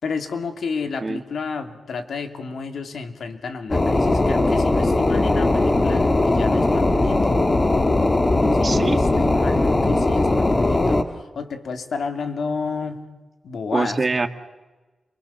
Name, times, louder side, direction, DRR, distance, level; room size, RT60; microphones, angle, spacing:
voice 1, 0.0-7.4 8.6-13.0 13.4-14.0, left 5 dB, 75° left, 6 dB, 2.6 m, -31 dB
sound 1, 3.7-11.0, left 2 dB, 25° left, 1.8 m, -19 dB
voice 2, 8.6-9.0 13.7-14.3, right 3 dB, 35° right, 9 dB, 1.7 m, -23 dB
28.0 x 23.5 x 7.1 m, 1.2 s
wide cardioid pair, 105°, 0 cm